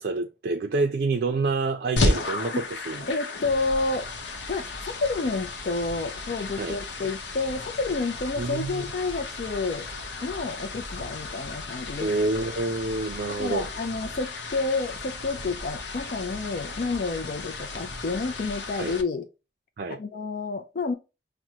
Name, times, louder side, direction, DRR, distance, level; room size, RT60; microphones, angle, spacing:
voice 1, 0.0-3.0 6.6-7.1 8.4-8.8 12.0-13.6 18.8-18.9 19.8-20.0, right 3 dB, 55° right, 0.4 m, -28 dB
sound 1, 2.0-19.0, left 2 dB, 80° left, 0.8 m, -33 dB
voice 2, 3.1-4.1 4.5-9.9 10.2-12.1 13.3-19.3 19.9-20.9, left 3 dB, 50° left, 0.4 m, -29 dB
6.0 x 2.1 x 2.7 m
head